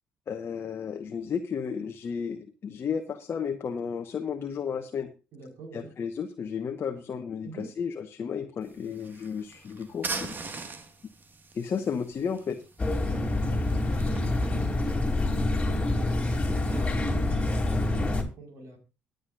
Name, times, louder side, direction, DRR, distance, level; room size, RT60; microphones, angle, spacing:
voice 1, 0.3-5.1 5.7-10.4 11.5-12.6, left 6 dB, 40° left, 5 dB, 1.2 m, -33 dB
voice 2, 5.3-5.9 7.4-7.7 11.7-11.8 13.1-16.1 16.7-18.8, right 3 dB, 60° right, 3 dB, 5.0 m, -45 dB
sound 1, 8.6-16.9, right 4 dB, 35° right, 1.8 m, -42 dB
sound 2, 12.8-18.2, left 2 dB, 20° left, 3.1 m, -26 dB
23.5 x 8.1 x 2.6 m, 0.31 s
figure-of-eight pair, 50°, 6 cm